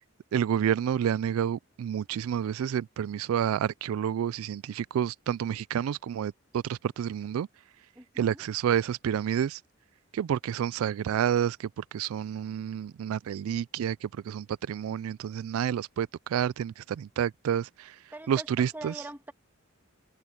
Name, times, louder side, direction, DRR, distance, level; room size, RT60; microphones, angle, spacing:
voice 1, 0.3-7.5 8.2-9.6 10.1-17.9 18.3-18.9, right 9 dB, 85° right, 0.3 m, -29 dB
voice 2, 8.0-8.4 18.1-18.5 18.7-19.3, right 2 dB, 10° right, 1.9 m, -42 dB
head